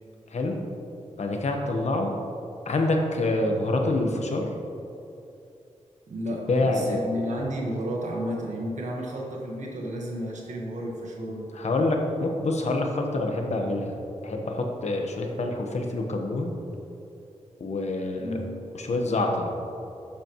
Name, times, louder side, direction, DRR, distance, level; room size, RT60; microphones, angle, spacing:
voice 1, 0.3-0.6 1.2-2.1 2.6-4.5 6.5-7.0 11.5-13.9 14.2-16.6 17.6-18.4 18.7-19.5, left 2 dB, 70° left, 2 dB, 1.2 m, -26 dB
voice 2, 6.1-11.5 18.2-18.6, equal, 85° right, -2 dB, 1.5 m, -32 dB
11.5 x 8.1 x 3.1 m, 2.7 s
wide cardioid pair, 100°, 12 cm